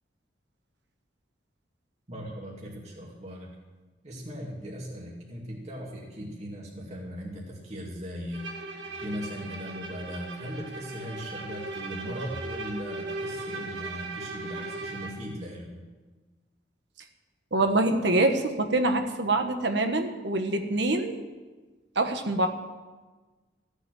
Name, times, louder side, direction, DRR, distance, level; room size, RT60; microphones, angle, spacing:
voice 1, 2.1-3.5 4.0-8.5 9.0-15.8, equal, 40° right, -3 dB, 2.7 m, -38 dB
Bowed string instrument, 8.3-15.3, right 2 dB, 90° right, 2.3 m, -38 dB
voice 2, 17.5-21.2 21.9-22.5, right 2 dB, 70° right, 6 dB, 1.4 m, -25 dB
15.0 x 8.2 x 9.3 m, 1.3 s
head